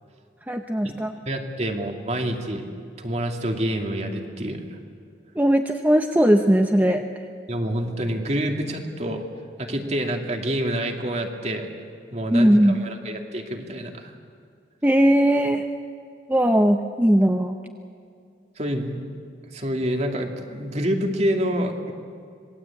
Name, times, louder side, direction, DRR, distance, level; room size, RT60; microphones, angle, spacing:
voice 1, 0.5-1.2 5.3-7.0 12.3-12.8 14.8-15.7 16.3-17.6, equal, 10° right, 5 dB, 0.8 m, -19 dB
voice 2, 1.3-2.7 3.0-4.6 7.5-9.2 9.6-11.7 12.1-14.1 18.6-19.0 19.5-21.9, right 1 dB, 40° right, 3 dB, 2.5 m, -27 dB
26.5 x 21.0 x 8.6 m, 2.4 s
head